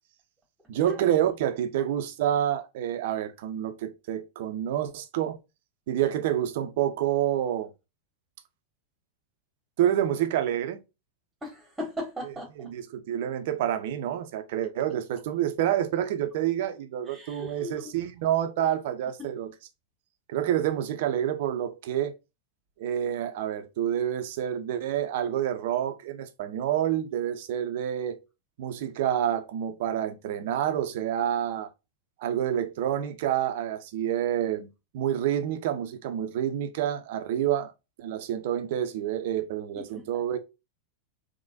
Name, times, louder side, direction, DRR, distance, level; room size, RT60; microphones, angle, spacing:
voice 1, 0.7-5.4 5.9-7.7 9.8-10.8 12.6-19.5 20.3-22.1 22.8-28.2 28.6-31.7 32.2-34.7 34.9-37.7 38.0-40.4, right 10 dB, 50° right, 0.6 m, -28 dB
voice 2, 11.4-12.7 17.1-17.9 39.7-40.2, left 1 dB, 10° right, 1.4 m, -38 dB
3.9 x 2.9 x 2.6 m
figure-of-eight pair, 90°, 0 cm